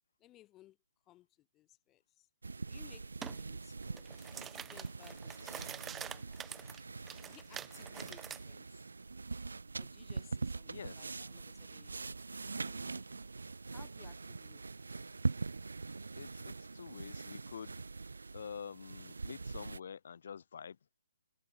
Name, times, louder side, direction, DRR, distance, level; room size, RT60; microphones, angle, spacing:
voice 1, 0.2-0.8 1.1-2.3 2.6-4.1 4.5-6.3 7.2-8.9 9.7-11.9 12.6-13.1 13.4-14.9, left 15 dB, 15° left, 2.1 m, -61 dB
sound 1, 2.4-19.8, right 4 dB, 90° right, 0.4 m, -43 dB
sound 2, 3.2-3.4 3.8-8.4, right 9 dB, 10° right, 0.3 m, -46 dB
voice 2, 10.7-11.1 16.2-17.8 18.3-20.8, left 7 dB, 60° left, 1.9 m, -47 dB
hypercardioid pair, 150°, 0 cm